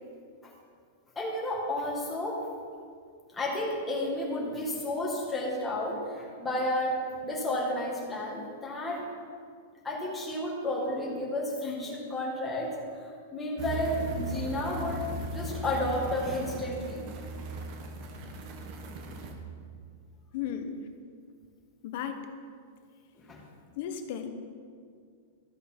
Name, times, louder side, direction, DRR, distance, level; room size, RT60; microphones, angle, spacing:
voice 1, 1.2-2.4 3.3-9.0 9.8-12.7 13.0-15.1 15.3-17.0 23.2-23.4, left 1 dB, 10° left, -4 dB, 1.9 m, -32 dB
sound 1, 13.6-19.3, right 2 dB, 40° right, 1.0 m, -38 dB
voice 2, 20.3-20.8 21.8-22.2 23.8-24.3, left 9 dB, 55° left, 8 dB, 0.8 m, -34 dB
13.0 x 5.2 x 4.5 m, 2.2 s
supercardioid pair, 155°, 0 cm